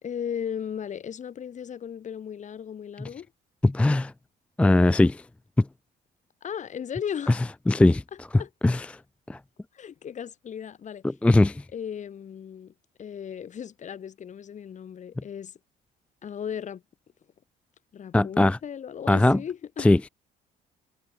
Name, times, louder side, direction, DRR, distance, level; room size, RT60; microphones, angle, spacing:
voice 1, 0.0-3.3 6.4-7.4 8.1-8.5 9.7-11.0 11.7-12.7 13.0-15.5 16.2-16.8 17.9-19.9, left 8 dB, 45° left, 5.4 m, -36 dB
voice 2, 3.6-4.1 4.6-5.2 5.6-5.7 7.3-7.4 7.7-8.0 8.6-8.9 9.3-9.4 11.2-11.6 18.1-18.6 19.1-19.4 19.8-20.0, left 2 dB, 5° left, 0.4 m, -19 dB
cardioid pair, 110°, 17 cm